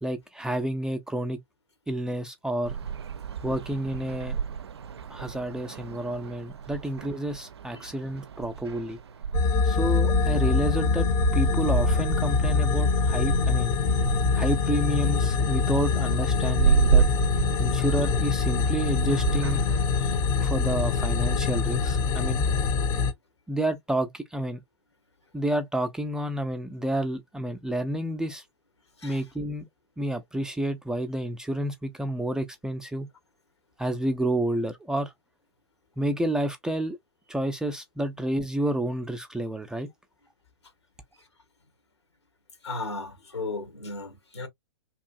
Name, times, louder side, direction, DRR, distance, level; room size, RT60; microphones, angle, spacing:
voice 1, 0.0-1.4 1.9-2.8 3.4-4.4 5.1-9.0 9.6-13.7 14.3-17.1 17.6-19.6 20.4-22.4 23.5-24.6 25.3-28.4 29.0-29.6 30.0-33.1 33.8-35.1 36.0-37.0 37.3-39.9, right 1 dB, 5° right, 0.4 m, -30 dB
sound 1, 2.6-20.6, right 7 dB, 75° right, 0.4 m, -31 dB
sound 2, 9.3-23.1, left 4 dB, 35° left, 0.7 m, -24 dB
voice 2, 42.6-44.5, left 3 dB, 85° left, 1.2 m, -36 dB
2.9 x 2.5 x 2.4 m
figure-of-eight pair, 110°, 14 cm